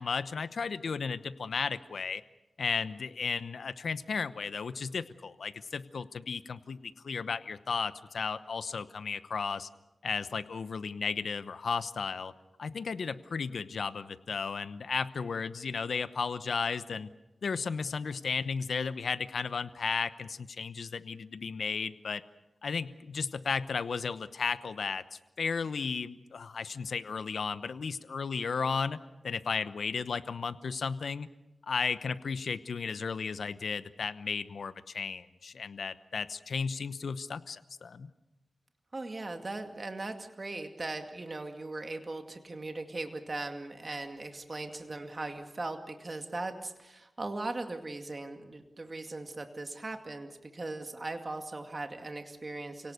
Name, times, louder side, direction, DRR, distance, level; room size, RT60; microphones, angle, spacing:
voice 1, 0.0-2.2 2.6-9.7 10.0-12.3 12.6-17.1 17.4-22.2 22.6-31.3 31.6-38.1, left 5 dB, 80° left, 13 dB, 0.9 m, -34 dB
voice 2, 38.9-52.9, right 2 dB, 40° right, 5 dB, 2.3 m, -39 dB
29.5 x 18.0 x 6.6 m, 0.99 s
wide cardioid pair, 70°, 0 cm